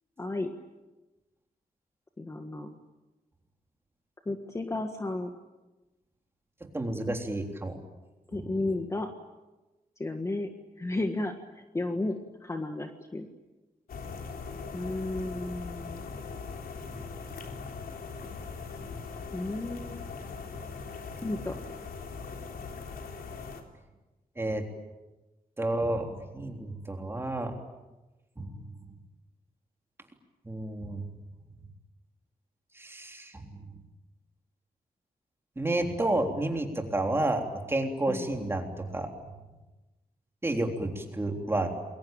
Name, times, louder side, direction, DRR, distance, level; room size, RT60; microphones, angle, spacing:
voice 1, 0.2-0.5 2.2-2.8 4.3-5.3 8.3-9.1 10.0-10.5 10.8-12.1 12.4-13.3 14.7-16.0 19.3-20.0 21.2-21.5 38.1-38.3, left 2 dB, 20° left, 5 dB, 1.5 m, -33 dB
voice 2, 6.7-7.7 8.4-8.5 24.4-24.6 25.6-27.5 28.4-28.5 30.5-31.0 32.8-33.4 35.6-37.4 37.7-39.1 40.4-41.7, right 2 dB, 15° right, 3 dB, 3.5 m, -30 dB
sound 1, 13.9-23.6, left 4 dB, 85° left, 3.5 m, -40 dB
28.5 x 22.5 x 9.0 m, 1.1 s
wide cardioid pair, 175°, 15 cm